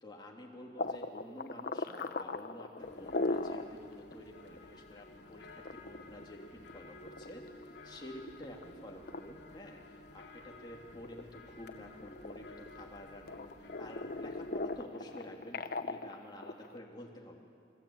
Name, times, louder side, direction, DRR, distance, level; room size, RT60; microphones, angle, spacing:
voice 1, 0.0-7.4 7.8-17.4, left 1 dB, 25° left, -1 dB, 3.2 m, -50 dB
sound 1, 0.8-3.7 4.1-4.2 4.6-4.7 5.4-7.7 8.2-8.6 9.1-9.2 9.8-10.7 11.0-12.9 13.3-16.8, left 2 dB, 55° left, 1.0 m, -38 dB
sound 2, 2.8-14.9, left 2 dB, 75° left, 2.5 m, -54 dB
29.5 x 22.5 x 9.0 m, 2.5 s
head